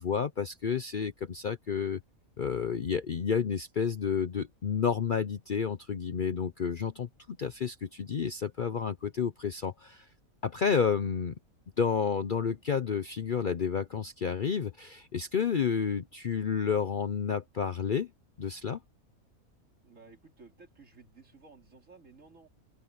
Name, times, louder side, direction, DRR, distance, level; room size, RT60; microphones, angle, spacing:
voice 1, 0.0-2.0 2.4-10.1 10.4-11.3 11.8-18.1 18.4-18.8, left 6 dB, 45° left, 0.7 m, -30 dB
voice 2, 19.8-22.5, right 4 dB, 60° right, 3.4 m, -55 dB
open air
omnidirectional pair, 1.5 m